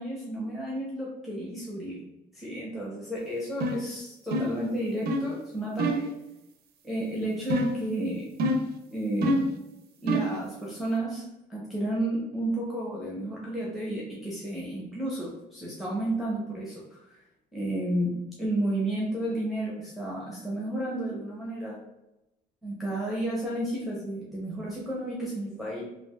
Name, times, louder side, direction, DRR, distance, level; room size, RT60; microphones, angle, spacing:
voice 1, 0.0-2.0 2.3-6.1 6.8-8.3 8.9-9.4 10.0-17.2 17.5-21.8 22.6-25.8, right 1 dB, ahead, -5 dB, 0.7 m, -32 dB
sound 1, 3.6-3.9 4.3-4.6 5.1-5.3 5.8-6.1 7.5-7.9 8.4-8.8 9.2-9.6 10.1-10.4, right 1 dB, 70° right, 0.4 m, -27 dB
3.1 x 2.4 x 2.3 m, 0.93 s
cardioid pair, 110°, 17 cm